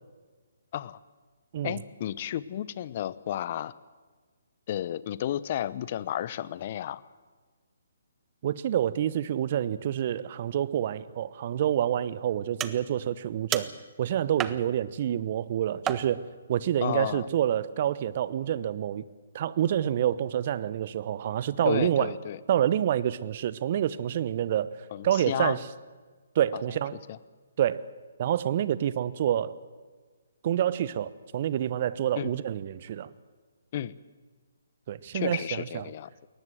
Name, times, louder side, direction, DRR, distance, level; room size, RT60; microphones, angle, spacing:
voice 1, 1.6-3.7 4.7-7.0 16.8-17.3 21.6-22.4 24.9-25.6 26.5-26.6 27.1-27.2 32.2-32.3 33.7-33.9 35.1-36.1, left 11 dB, 40° left, 18 dB, 0.9 m, -32 dB
voice 2, 8.4-13.7 14.0-16.2 16.5-19.0 19.3-22.1 22.5-24.8 25.0-25.6 26.3-27.0 27.6-27.9 28.2-29.5 30.4-33.1 34.9-35.8, right 10 dB, 45° right, 17 dB, 1.0 m, -27 dB
sound 1, 12.6-13.0 13.5-14.0 14.4-15.0 15.9-16.4, right 10 dB, 15° right, 0.9 m, -33 dB
22.0 x 18.5 x 7.8 m, 1.4 s
figure-of-eight pair, 135°, 0 cm